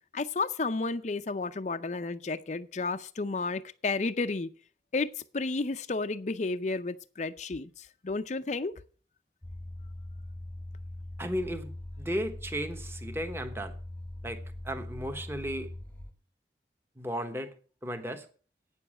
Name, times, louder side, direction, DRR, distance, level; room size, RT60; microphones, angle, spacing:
voice 1, 0.1-4.5 4.9-8.7, left 3 dB, 40° left, 0.5 m, -32 dB
sound 1, 9.4-16.1, left 1 dB, 10° left, 1.1 m, -41 dB
voice 2, 11.2-11.7 12.0-13.8 14.2-15.7 17.0-17.5 17.8-18.3, equal, 15° right, 1.1 m, -35 dB
9.1 x 7.0 x 8.6 m
head